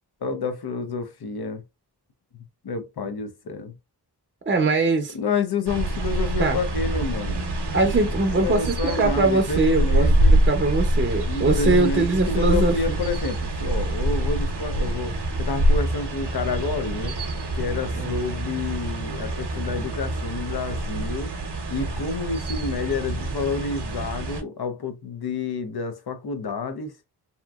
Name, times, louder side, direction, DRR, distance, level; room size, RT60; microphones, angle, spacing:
voice 1, 0.2-1.6 2.6-3.7 5.1-7.4 8.3-10.3 11.3-17.1 17.5-21.3 21.7-26.9, left 4 dB, 70° left, 0.6 m, -29 dB
voice 2, 4.5-5.1 6.4-6.6 7.7-13.0 18.0-18.1, right 3 dB, 30° right, 0.5 m, -22 dB
sound 1, 5.7-24.4, right 1 dB, 80° right, 0.7 m, -25 dB
2.8 x 2.5 x 2.3 m
wide cardioid pair, 60°, 40 cm